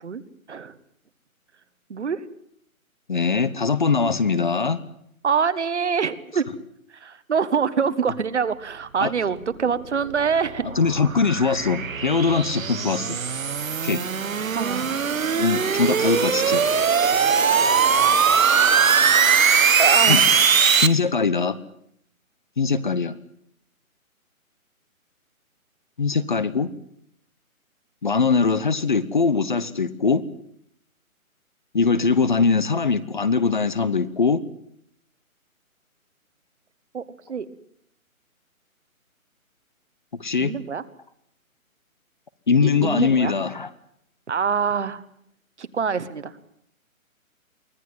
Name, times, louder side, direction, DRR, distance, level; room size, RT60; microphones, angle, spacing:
voice 1, 1.9-2.2 5.2-6.5 6.9-10.7 14.5-15.0 19.8-20.5 36.9-37.0 37.3-37.5 40.4-40.8 42.6-43.3 44.3-45.0 45.6-46.3, right 6 dB, 55° right, 14 dB, 1.5 m, -25 dB
voice 2, 3.1-4.8 9.0-9.1 10.8-13.2 13.8-14.0 15.4-16.6 20.1-20.2 20.8-21.6 22.6-23.2 26.0-26.7 28.0-30.2 31.7-34.4 40.2-40.5 42.5-43.7, left 5 dB, 35° left, 17 dB, 0.9 m, -21 dB
sound 1, 9.6-20.9, right 6 dB, 70° right, 1.5 m, -20 dB
24.0 x 16.0 x 9.3 m, 0.71 s
hypercardioid pair, 170°, 43 cm